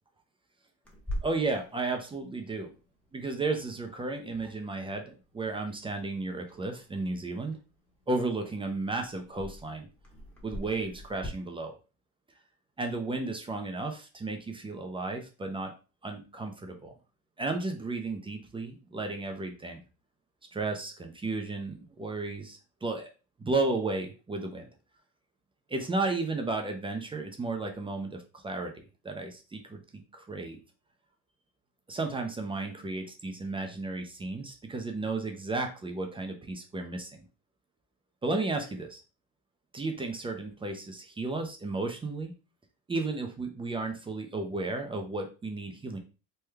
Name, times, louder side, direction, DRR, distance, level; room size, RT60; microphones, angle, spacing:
Clock, 0.8-11.3, equal, 5° left, 0.9 m, -45 dB
voice 1, 1.2-2.7 3.1-7.6 8.1-9.9 10.4-11.7 12.8-15.7 16.0-16.9 17.4-19.8 20.5-23.1 23.4-24.7 25.7-29.8 30.1-30.6 31.9-37.2 38.2-39.0 39.7-42.3 42.9-46.0, right 3 dB, 15° right, 4 dB, 0.4 m, -33 dB
3.2 x 2.2 x 3.3 m, 0.32 s
supercardioid pair, 115°, 41 cm